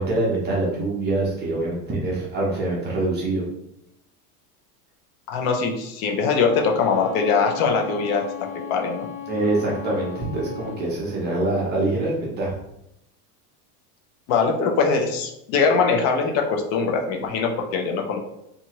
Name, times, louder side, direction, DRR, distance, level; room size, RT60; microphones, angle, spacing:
voice 1, 0.0-3.5 9.3-12.5, right 2 dB, 20° right, -4 dB, 0.5 m, -24 dB
voice 2, 5.3-8.3 8.7-9.1 14.3-18.2, left 5 dB, 60° left, 3 dB, 0.6 m, -22 dB
Bowed string instrument, 6.0-10.9, left 8 dB, 20° left, 1.1 m, -36 dB
2.7 x 2.4 x 2.8 m, 0.81 s
supercardioid pair, 150°, 48 cm